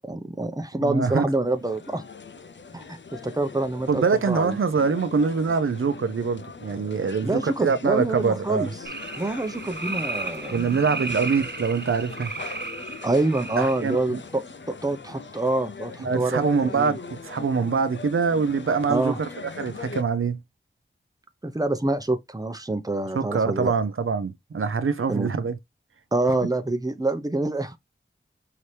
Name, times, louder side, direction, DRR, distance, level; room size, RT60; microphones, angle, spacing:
voice 1, 0.1-2.0 2.7-4.6 7.2-8.7 9.2-11.0 13.0-14.4 14.7-16.9 18.9-19.2 21.4-23.7 25.1-25.3 26.1-27.8, right 2 dB, 20° right, 0.8 m, -26 dB
voice 2, 0.8-1.2 3.9-8.7 10.5-12.3 13.6-14.2 16.0-20.4 23.1-25.6, right 5 dB, 90° right, 0.5 m, -24 dB
sound 1, 1.4-20.0, left 5 dB, 65° left, 0.5 m, -41 dB
sound 2, 8.8-14.0, right 3 dB, 55° right, 1.2 m, -34 dB
5.7 x 2.9 x 3.3 m
wide cardioid pair, 50°, 21 cm